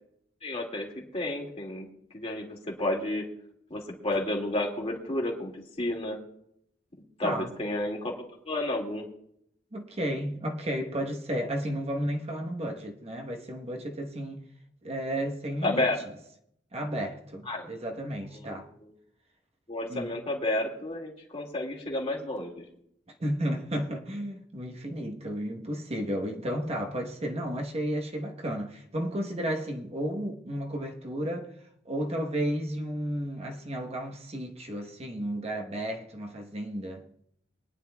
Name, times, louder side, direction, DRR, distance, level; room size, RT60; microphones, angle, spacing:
voice 1, 0.4-1.9 2.1-3.3 3.7-6.2 7.2-8.1 8.5-9.1 15.6-16.0 17.5-17.7 18.4-18.6 19.7-22.6, left 1 dB, 35° left, 2.2 m, -31 dB
voice 2, 7.2-7.5 9.7-14.4 14.8-15.8 16.7-18.7 19.9-20.2 23.2-31.5 31.8-37.0, equal, 35° right, 1.1 m, -33 dB
24.0 x 10.0 x 2.3 m
head